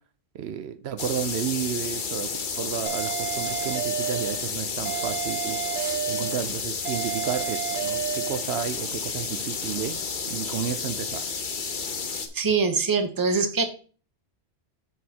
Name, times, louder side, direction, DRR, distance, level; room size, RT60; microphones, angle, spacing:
voice 1, 0.3-2.3 2.6-5.6 6.1-10.0 10.3-11.3, right 9 dB, 70° right, 0.8 m, -32 dB
sound 1, 1.0-12.3, left 5 dB, 50° left, 1.0 m, -31 dB
sound 2, 2.9-4.4 4.9-6.4 6.9-8.4, right 10 dB, 35° right, 2.2 m, -31 dB
voice 2, 12.3-13.6, right 4 dB, 20° right, 0.8 m, -24 dB
8.2 x 6.3 x 2.8 m
omnidirectional pair, 1.2 m